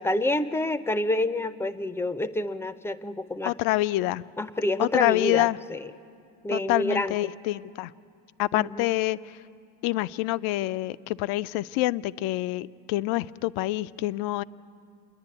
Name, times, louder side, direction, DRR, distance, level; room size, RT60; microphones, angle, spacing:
voice 1, 0.0-3.5 4.4-5.9 6.4-7.1 8.5-8.9, left 1 dB, 5° left, 13 dB, 0.5 m, -28 dB
voice 2, 3.4-4.2 4.8-5.6 6.5-7.9 8.4-9.2 9.8-14.4, left 18 dB, 70° left, 17 dB, 0.5 m, -26 dB
28.0 x 10.5 x 9.6 m, 2.4 s
cardioid pair, 120°, 39 cm